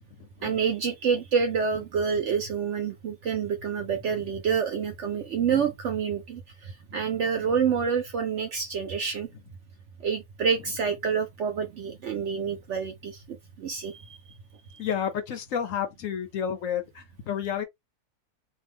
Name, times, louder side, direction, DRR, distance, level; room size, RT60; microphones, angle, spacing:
voice 1, 0.4-9.3 10.0-14.4 14.7-14.8, right 6 dB, 65° right, 0.7 m, -28 dB
voice 2, 14.8-17.6, left 8 dB, 65° left, 0.9 m, -31 dB
2.7 x 2.3 x 3.3 m
omnidirectional pair, 1.7 m